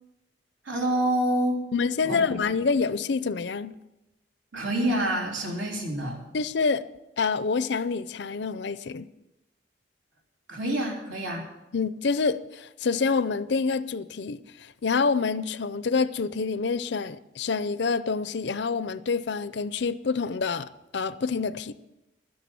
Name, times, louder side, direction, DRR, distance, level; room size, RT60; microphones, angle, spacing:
voice 1, 0.6-1.6 2.0-2.4 4.5-6.2 10.5-11.5, right 1 dB, 70° right, 3.4 m, -27 dB
voice 2, 1.7-3.7 6.3-6.8 7.2-9.1 11.7-14.4 14.8-21.7, left 4 dB, 60° left, 0.5 m, -27 dB
12.5 x 10.5 x 7.1 m
head